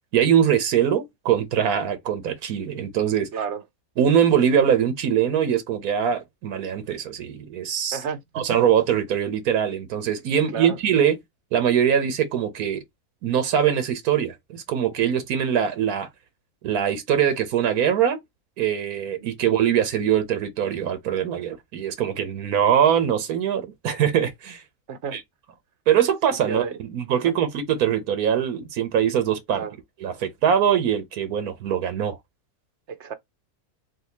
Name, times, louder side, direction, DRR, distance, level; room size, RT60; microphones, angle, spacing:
voice 1, 0.1-3.3 4.0-8.0 8.3-11.2 11.5-12.8 13.2-16.1 16.6-18.2 18.6-24.6 25.1-25.2 25.9-29.6 30.0-32.2, right 9 dB, 90° right, 1.4 m, -22 dB
voice 2, 3.3-3.6 7.9-8.5 10.5-10.8 19.2-19.3 24.9-25.2 26.5-26.8 27.2-27.3 29.5-29.7 32.9-33.1, right 6 dB, 60° right, 0.9 m, -31 dB
4.1 x 2.5 x 4.0 m
omnidirectional pair, 1.5 m